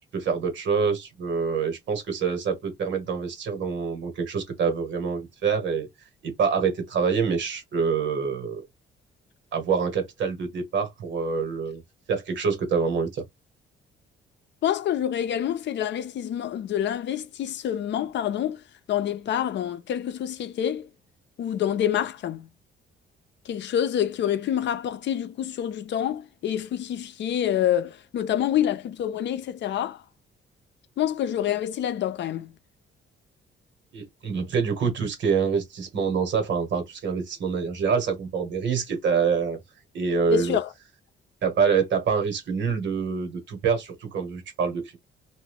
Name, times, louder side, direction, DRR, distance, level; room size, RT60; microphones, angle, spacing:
voice 1, 0.1-5.9 6.2-8.6 9.5-11.8 12.1-13.2 33.9-39.6 39.9-40.6 41.4-45.0, right 6 dB, 65° right, 1.4 m, -26 dB
voice 2, 14.6-18.6 18.9-20.9 21.4-22.5 23.5-30.0 31.0-32.5 40.3-40.7, left 10 dB, 65° left, 0.5 m, -27 dB
2.6 x 2.3 x 3.4 m
cardioid pair, 90°, 20 cm